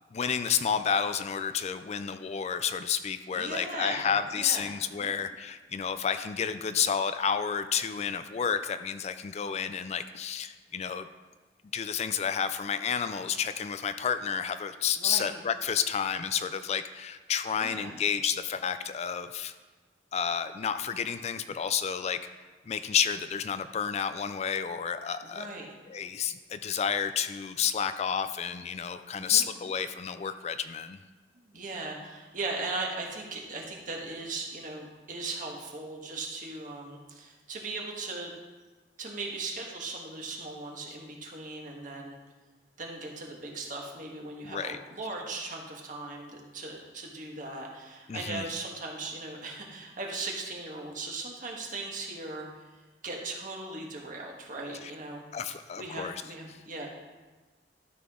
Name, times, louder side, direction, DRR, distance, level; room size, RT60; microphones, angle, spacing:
voice 1, 0.1-11.1 11.7-19.5 20.1-22.2 22.7-25.5 25.9-31.0 44.4-44.8 48.1-48.4 54.8-54.9 55.3-56.2, left 7 dB, 40° left, 11 dB, 0.3 m, -30 dB
voice 2, 3.3-5.1 15.0-15.3 17.6-17.9 25.2-25.7 29.1-29.4 31.4-38.3 39.0-42.2 42.8-52.5 53.0-56.9, right 3 dB, 50° right, -1 dB, 1.5 m, -38 dB
13.0 x 5.8 x 3.7 m, 1.3 s
head